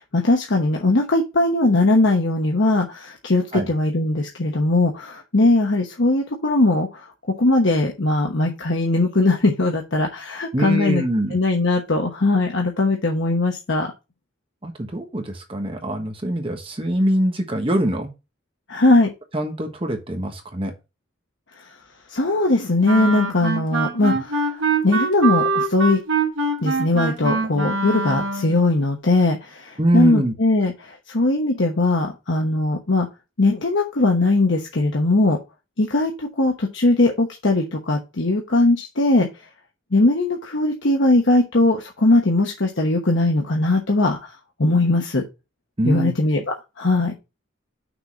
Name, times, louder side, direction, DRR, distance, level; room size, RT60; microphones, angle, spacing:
voice 1, 0.1-7.0 7.4-11.0 11.3-13.9 18.7-19.1 22.1-26.0 26.6-33.1 33.4-35.4 35.8-39.3 39.9-44.3 44.6-45.2 45.8-46.4 46.8-47.1, left 2 dB, 65° left, 1 dB, 1.0 m, -20 dB
voice 2, 10.5-11.4 14.6-18.1 19.3-20.7 24.1-24.2 29.8-30.3 45.8-46.1, right 1 dB, 25° right, 4 dB, 1.1 m, -23 dB
Wind instrument woodwind instrument, 22.8-28.6, right 3 dB, 70° right, 1.4 m, -23 dB
6.1 x 4.0 x 6.2 m, 0.26 s
head